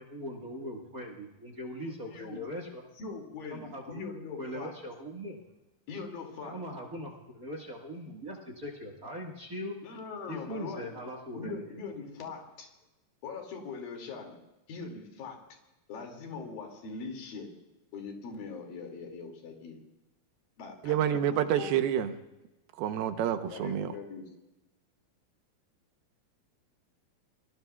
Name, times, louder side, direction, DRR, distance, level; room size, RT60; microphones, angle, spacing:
voice 1, 0.0-2.8 3.5-4.0 4.4-5.4 6.4-9.8 10.3-11.8, equal, 45° right, 0 dB, 1.1 m, -40 dB
voice 2, 1.9-2.4 3.0-4.7 5.9-6.6 9.8-11.0 11.3-12.7 13.2-14.4 14.7-15.5 15.9-17.5 17.9-19.8 20.6-21.7 23.5-24.3, left 4 dB, 70° left, 2 dB, 4.1 m, -41 dB
voice 3, 20.8-22.1 22.8-24.0, right 9 dB, 80° right, 9 dB, 2.8 m, -28 dB
29.0 x 21.5 x 2.3 m, 0.99 s
omnidirectional pair, 4.3 m